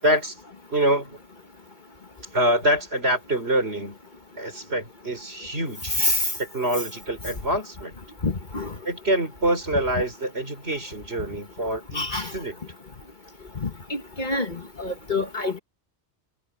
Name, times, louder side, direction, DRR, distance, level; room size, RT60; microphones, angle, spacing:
voice 1, 0.0-0.4 0.7-1.2 2.3-4.0 4.4-6.0 6.4-7.9 8.9-12.1 12.3-12.6, right 1 dB, 70° right, 5.3 m, -25 dB
voice 2, 6.0-6.3 8.2-8.7 9.9-10.0 11.9-12.3 13.6-15.6, left 2 dB, 45° left, 1.6 m, -27 dB
omnidirectional pair, 1.1 m